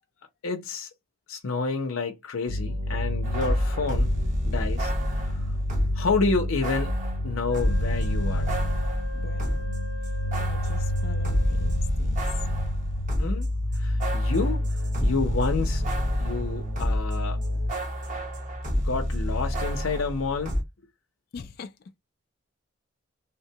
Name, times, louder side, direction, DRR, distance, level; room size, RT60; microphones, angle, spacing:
voice 1, 0.4-0.9 1.3-4.1 4.5-5.3 5.9-7.0 7.2-8.5 13.2-13.5 13.7-15.8 16.2-17.4 18.8-20.6, left 4 dB, 90° left, 0.6 m, -29 dB
sound 1, 2.5-17.7, left 1 dB, 80° right, 2.3 m, -29 dB
sound 2, 3.2-6.1 6.6-9.8 10.0-17.1 17.4-20.6, equal, 40° right, 0.9 m, -30 dB
Wind instrument woodwind instrument, 7.5-12.1, left 1 dB, 55° right, 0.5 m, -43 dB
voice 2, 9.1-9.8 10.4-12.2 21.3-21.8, left 5 dB, 45° left, 0.3 m, -43 dB
3.5 x 2.2 x 2.7 m
head